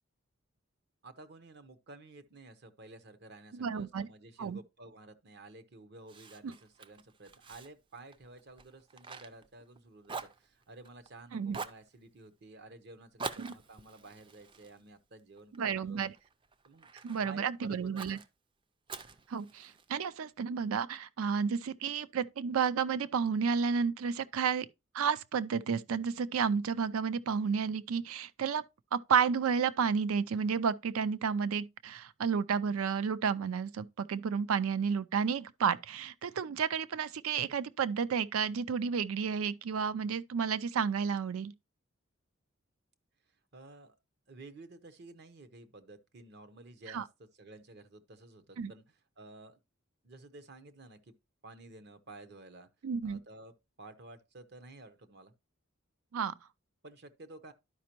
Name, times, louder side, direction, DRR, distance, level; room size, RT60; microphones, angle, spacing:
voice 1, 1.0-16.0 16.6-16.9 17.2-18.2 43.5-43.9 44.3-47.1 47.4-49.6 50.0-51.1 51.4-52.7 53.0-55.3 56.8-57.5, right 2 dB, 50° right, 0.8 m, -52 dB
voice 2, 3.5-4.1 4.4-4.6 6.4-6.5 11.3-11.6 13.4-13.5 15.6-16.1 17.0-18.2 19.3-24.7 24.9-28.6 28.9-41.5 46.9-47.0 48.6-48.7 52.8-53.2 56.1-56.3, right 6 dB, 80° right, 0.4 m, -31 dB
Fire, 6.1-9.8 10.0-11.1 11.5-11.9 13.2-15.6 16.1-17.2 18.0-18.3 18.9-20.0, right 4 dB, 25° right, 0.4 m, -45 dB
11.5 x 5.1 x 2.9 m
head